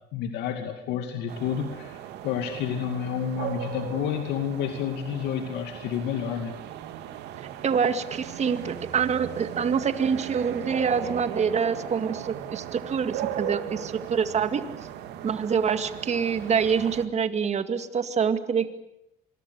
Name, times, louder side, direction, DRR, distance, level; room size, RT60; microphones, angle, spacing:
voice 1, 0.1-6.5, left 8 dB, 85° left, 6 dB, 2.5 m, -30 dB
sound 1, 1.3-17.1, right 10 dB, 85° right, 2.4 m, -37 dB
voice 2, 7.6-14.6 15.2-18.7, right 6 dB, 40° right, 10 dB, 2.2 m, -26 dB
26.0 x 22.0 x 8.4 m, 0.81 s
cardioid pair, 110°, 17 cm